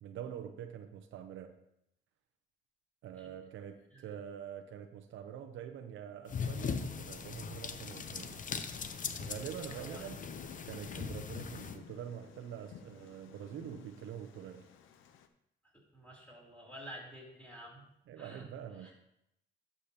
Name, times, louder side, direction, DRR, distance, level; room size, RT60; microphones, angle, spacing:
voice 1, 0.0-1.6 3.0-8.4 9.2-10.3 10.6-14.7 18.1-18.9, right 9 dB, 80° right, 0.7 m, -45 dB
sound 1, 6.3-11.8, left 6 dB, 40° left, 0.6 m, -40 dB
voice 2, 9.6-10.0 15.9-17.8 18.2-18.4 18.8-18.9, equal, 5° left, 3.5 m, -50 dB
Thunder, 10.0-15.3, left 8 dB, 85° left, 0.7 m, -54 dB
11.5 x 6.8 x 2.9 m
cardioid pair, 90°, 20 cm